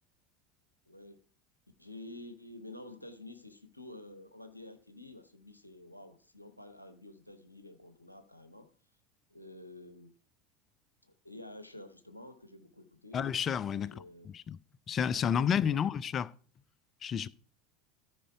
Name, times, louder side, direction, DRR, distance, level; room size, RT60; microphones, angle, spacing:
voice 1, 0.9-1.2 1.8-8.7 9.3-10.2 11.2-13.2 13.7-14.3 15.1-15.8, left 1 dB, 85° left, 0.7 m, -50 dB
voice 2, 13.1-14.0 14.3-14.6 14.9-16.3 17.0-17.3, left 8 dB, 30° left, 0.4 m, -30 dB
13.5 x 5.2 x 4.6 m
figure-of-eight pair, 75°, 0 cm